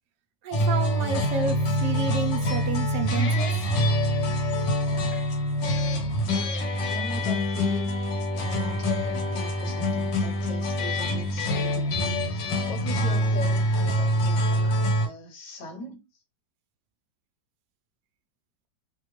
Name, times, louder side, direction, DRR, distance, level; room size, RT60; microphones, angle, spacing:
voice 1, 0.4-3.5, right 5 dB, 70° right, 1.0 m, -30 dB
sound 1, 0.5-15.1, equal, 80° left, 1.6 m, -25 dB
voice 2, 6.8-8.1 8.3-16.0, left 2 dB, 40° left, 0.9 m, -40 dB
3.2 x 2.2 x 3.0 m
omnidirectional pair, 2.0 m